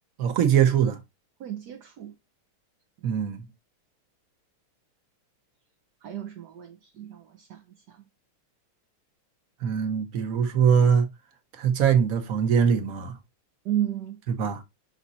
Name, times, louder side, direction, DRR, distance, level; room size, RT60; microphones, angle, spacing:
voice 1, 0.2-1.0 3.0-3.5 9.6-11.1 11.6-13.1 14.4-14.6, right 7 dB, 50° right, 1.3 m, -22 dB
voice 2, 1.4-2.1 6.0-8.0 13.6-14.2, right 11 dB, 65° right, 1.1 m, -33 dB
5.8 x 4.2 x 4.1 m
omnidirectional pair, 2.3 m